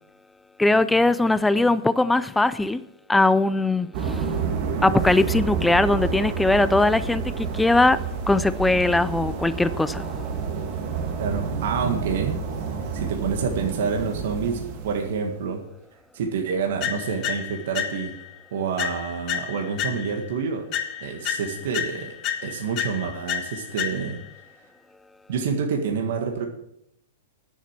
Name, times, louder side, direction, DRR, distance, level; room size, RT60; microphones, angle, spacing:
voice 1, 0.6-2.8 3.1-4.3 4.8-10.1, left 2 dB, 5° left, 0.4 m, -20 dB
sound 1, 3.9-15.3, right 5 dB, 45° right, 2.3 m, -29 dB
voice 2, 11.2-12.4 12.9-15.6 16.1-18.2 18.5-20.7 21.0-22.1 22.4-24.2 25.3-26.5, right 6 dB, 65° right, 1.8 m, -27 dB
sound 2, 16.8-18.3 18.8-20.3 20.7-24.3, left 10 dB, 40° left, 1.5 m, -31 dB
10.0 x 7.3 x 7.4 m
hypercardioid pair, 135°, 0 cm